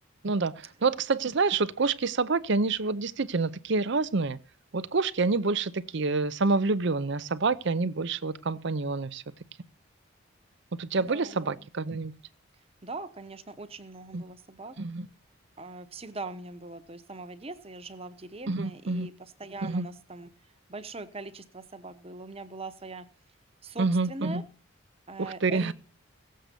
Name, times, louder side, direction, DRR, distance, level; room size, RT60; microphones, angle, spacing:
voice 1, 0.2-4.4 4.7-9.2 10.8-12.1 14.1-14.2 14.8-15.1 18.5-19.1 19.6-19.9 23.8-24.4 25.2-25.7, right 3 dB, 55° right, 0.6 m, -27 dB
voice 2, 11.0-11.5 12.8-14.7 15.6-20.3 20.7-23.0 23.6-24.4 25.1-25.7, right 3 dB, 30° right, 1.0 m, -41 dB
17.0 x 7.7 x 6.8 m
head